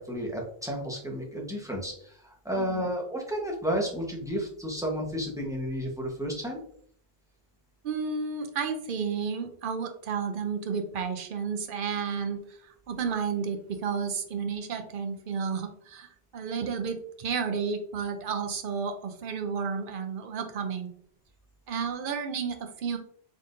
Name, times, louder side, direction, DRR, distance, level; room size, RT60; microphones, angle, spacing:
voice 1, 0.1-6.6, equal, 5° right, -1 dB, 0.9 m, -32 dB
voice 2, 2.5-2.9 7.8-20.9 21.7-23.0, right 6 dB, 60° right, 6 dB, 0.7 m, -32 dB
4.0 x 3.6 x 2.5 m, 0.63 s
omnidirectional pair, 1.1 m